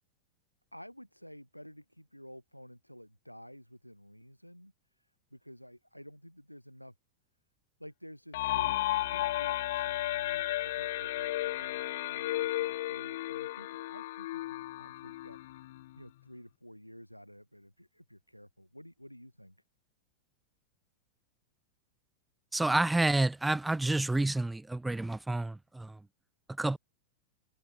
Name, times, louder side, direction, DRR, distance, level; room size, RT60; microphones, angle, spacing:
voice 1, 0.7-6.9 7.8-11.8 12.1-15.4 16.0-19.5, equal, 90° left, 5.1 m, -52 dB
Siren Long, 8.3-16.0, left 16 dB, 55° left, 1.1 m, -33 dB
voice 2, 22.5-26.0 26.6-26.8, right 2 dB, 5° right, 0.6 m, -29 dB
figure-of-eight pair, 90°, 0 cm